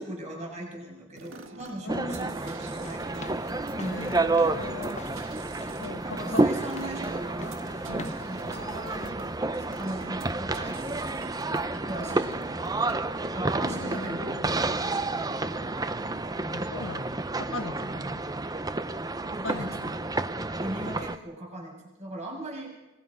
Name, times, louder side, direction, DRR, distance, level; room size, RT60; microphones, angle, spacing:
voice 1, 0.0-3.4 3.7-4.2 6.0-7.6 8.2-16.2 17.8-18.1 19.3-19.8 20.2-20.3 20.6-22.7, right 1 dB, 35° right, -1 dB, 7.2 m, -39 dB
sound 1, 1.1-13.3, right 3 dB, 85° right, 1.9 m, -48 dB
voice 2, 1.8-2.4 3.8-5.0 5.8-6.5 7.9-8.2 13.6-14.5 16.5-18.2 19.3-19.9, left 2 dB, 75° left, 8 dB, 1.4 m, -39 dB
sound 2, 1.9-21.2, right 2 dB, 20° right, 0.7 m, -30 dB
sound 3, 2.8-9.1, left 3 dB, 35° left, 0.9 m, -45 dB
25.5 x 20.0 x 5.5 m, 1.1 s
head